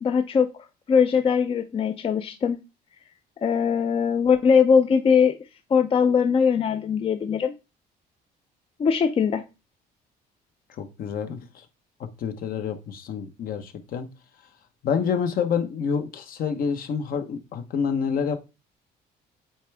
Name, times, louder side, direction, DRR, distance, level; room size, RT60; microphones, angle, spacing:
voice 1, 0.0-0.5 0.9-2.6 3.4-5.4 5.7-7.5 8.8-9.4, left 6 dB, 35° left, 0.5 m, -21 dB
voice 2, 10.8-11.6 12.0-14.1 14.8-18.4, left 6 dB, 60° left, 1.0 m, -28 dB
8.7 x 3.5 x 3.3 m
cardioid pair, 110°, 17 cm